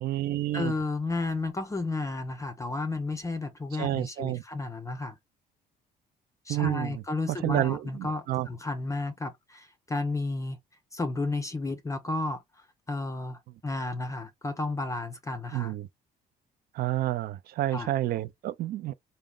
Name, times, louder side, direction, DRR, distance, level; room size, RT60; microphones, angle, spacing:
voice 1, 0.0-0.7 3.8-4.4 6.5-7.0 7.4-8.5 15.5-15.9 16.7-18.9, right 14 dB, 65° right, 0.4 m, -29 dB
voice 2, 0.5-5.1 6.5-10.6 10.9-12.4 12.9-15.7 17.7-17.9, left 2 dB, 20° left, 0.5 m, -32 dB
3.6 x 2.1 x 3.6 m
cardioid pair, 110°, 17 cm